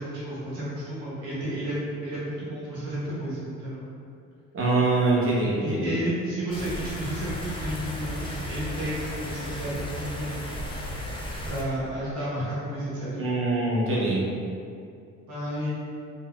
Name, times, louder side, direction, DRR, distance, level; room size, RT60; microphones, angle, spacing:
voice 1, 0.0-3.8 5.6-10.5 11.5-13.3 15.3-15.7, right 1 dB, 75° right, -9 dB, 0.9 m, -32 dB
voice 2, 4.5-6.0 13.1-14.3, right 2 dB, 35° right, -6 dB, 0.8 m, -24 dB
sound 1, 6.5-11.6, equal, 15° left, 0.5 m, -35 dB
3.5 x 2.1 x 2.2 m, 2.4 s
hypercardioid pair, 45°, 37 cm